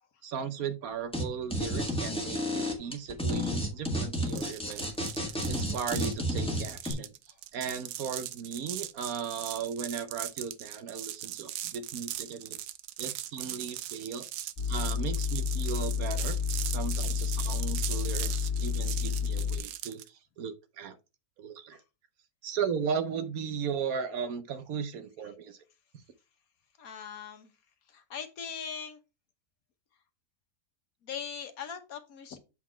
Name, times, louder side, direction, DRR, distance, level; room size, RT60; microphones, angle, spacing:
voice 1, 0.2-4.9 5.5-7.1 7.5-16.4 16.6-21.0 21.4-21.8 22.4-25.6, right 6 dB, 70° right, 1.1 m, -36 dB
sound 1, 1.1-1.2 1.5-6.9, equal, 5° left, 1.5 m, -31 dB
sound 2, 4.3-20.1, right 13 dB, 85° right, 1.2 m, -39 dB
sound 3, 14.6-19.6, left 6 dB, 40° left, 1.9 m, -30 dB
voice 2, 26.8-27.5 27.9-29.0 31.0-32.4, left 7 dB, 65° left, 1.4 m, -40 dB
7.3 x 4.0 x 4.3 m
omnidirectional pair, 1.7 m